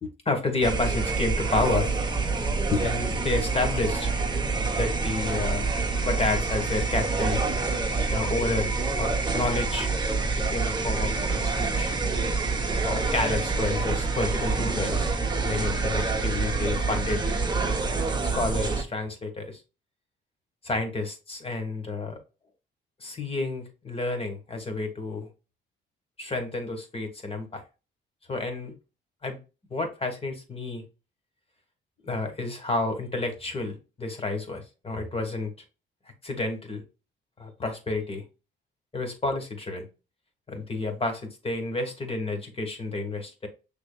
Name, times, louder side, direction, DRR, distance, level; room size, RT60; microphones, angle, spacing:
voice 1, 0.0-1.9 2.7-4.1 4.7-5.7 6.0-7.6 8.1-9.9 10.5-11.9 12.8-15.1 15.4-17.2 18.3-19.6 20.6-22.2 23.0-25.3 26.2-27.6 28.3-28.7 29.2-29.4 29.7-30.8 32.0-35.5 36.2-36.8 37.4-38.2 38.9-39.9 40.5-43.5, left 2 dB, 30° left, 5 dB, 1.4 m, -30 dB
sound 1, 0.6-18.8, right 3 dB, 20° right, 0.9 m, -27 dB
6.0 x 3.5 x 2.2 m, 0.31 s
cardioid pair, 90°, 20 cm